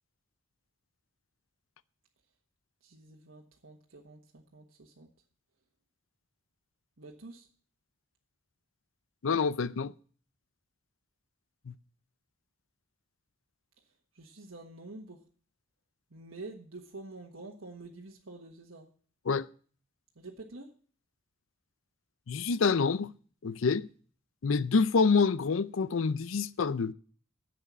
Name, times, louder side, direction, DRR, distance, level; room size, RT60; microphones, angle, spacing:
voice 1, 2.8-5.1 7.0-7.5 14.1-15.2 16.1-18.9 20.2-20.7, right 2 dB, 80° right, 1.4 m, -47 dB
voice 2, 9.2-9.9 11.7-11.8 19.3-19.5 22.3-23.1 23.4-23.9 24.4-26.9, left 5 dB, 80° left, 0.5 m, -27 dB
11.0 x 7.7 x 6.2 m
head